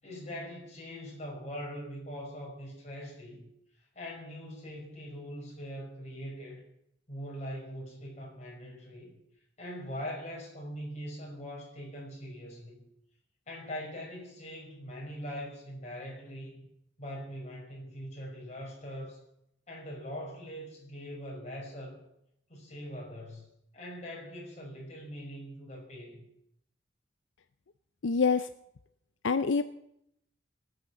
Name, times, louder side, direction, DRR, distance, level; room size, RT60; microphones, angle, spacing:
voice 1, 0.0-3.5 3.9-6.6 7.1-9.2 9.6-12.8 13.5-16.7 17.0-19.2 19.7-22.0 22.5-23.5 23.7-26.2, equal, 35° left, -2 dB, 5.9 m, -42 dB
voice 2, 28.0-28.5 29.2-29.6, left 5 dB, 75° left, 12 dB, 0.5 m, -25 dB
18.5 x 9.4 x 7.2 m, 0.79 s
head